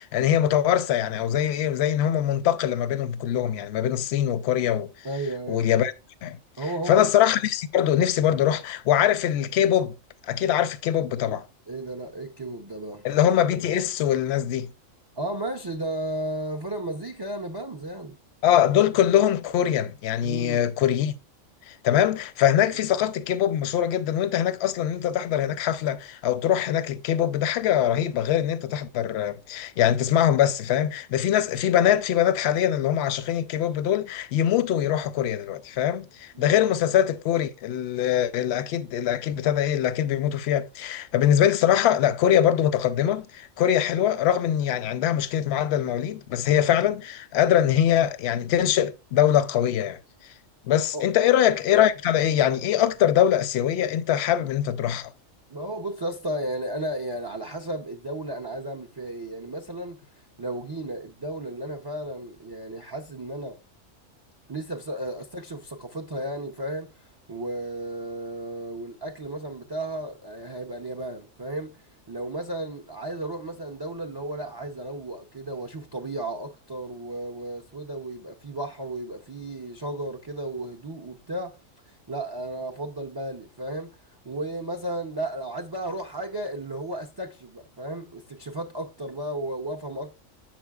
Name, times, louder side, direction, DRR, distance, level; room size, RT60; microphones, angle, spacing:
voice 1, 0.0-4.9 5.5-5.9 6.2-6.4 6.9-9.9 10.3-11.5 13.0-14.7 18.4-21.1 21.7-50.0 50.6-55.1, left 10 dB, 65° left, 0.7 m, -23 dB
voice 2, 5.0-5.7 6.6-7.1 11.7-13.1 15.2-18.2 20.2-20.7 22.7-22.8 36.3-36.7 50.9-51.0 55.5-60.0 60.4-63.6 64.5-81.6 81.9-84.0 84.2-90.2, right 1 dB, 40° right, 0.3 m, -34 dB
7.3 x 5.9 x 2.3 m
omnidirectional pair, 1.4 m